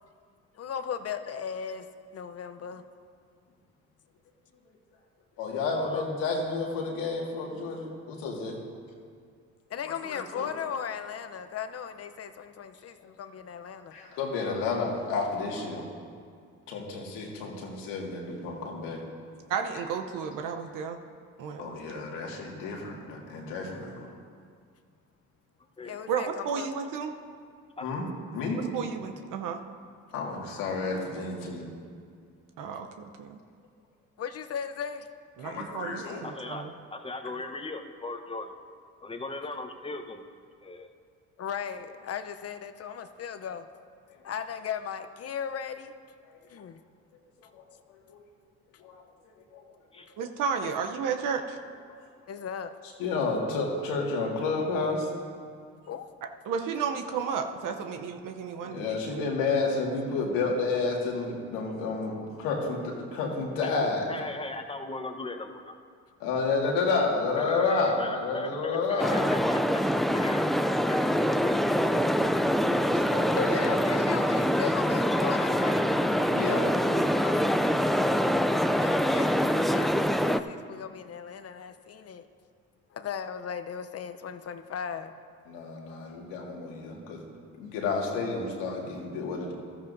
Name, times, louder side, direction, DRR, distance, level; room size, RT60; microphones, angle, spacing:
voice 1, 0.5-1.9 2.1-2.8 9.7-13.9 25.8-26.7 34.2-35.1 41.4-43.7 44.2-45.9 46.5-46.8 50.6-50.7 52.3-52.7 55.9-56.1 73.4-75.9 77.2-77.5 78.7-82.3 82.9-85.1, left 7 dB, 45° left, 9 dB, 0.8 m, -37 dB
voice 2, 5.4-8.6 10.0-10.5 13.9-15.9 16.7-19.0 21.6-24.1 27.8-28.0 28.3-28.6 30.1-31.6 35.4-36.3 46.2-46.4 47.4-47.6 48.1-48.2 48.8-49.6 53.0-55.1 58.4-64.1 66.2-69.3 73.1-73.8 76.3-76.7 85.5-87.2 87.6-89.5, left 4 dB, 85° left, -1 dB, 2.0 m, -30 dB
voice 3, 19.5-21.0 21.4-22.0 26.1-27.1 28.7-29.6 32.6-33.4 35.4-36.7 50.2-51.6 56.2-59.3, right 6 dB, 70° right, 5 dB, 0.8 m, -33 dB
voice 4, 36.2-38.5 39.0-40.2 40.6-40.9 49.9-50.1 63.6-63.8 64.1-65.7 67.4-69.8 70.1-70.6 70.9-71.1 71.4-71.6, left 2 dB, 15° left, 6 dB, 1.0 m, -38 dB
sound 1, 69.0-80.4, equal, ahead, 0.3 m, -25 dB
14.5 x 13.0 x 2.7 m, 2.2 s
supercardioid pair, 70°, 33 cm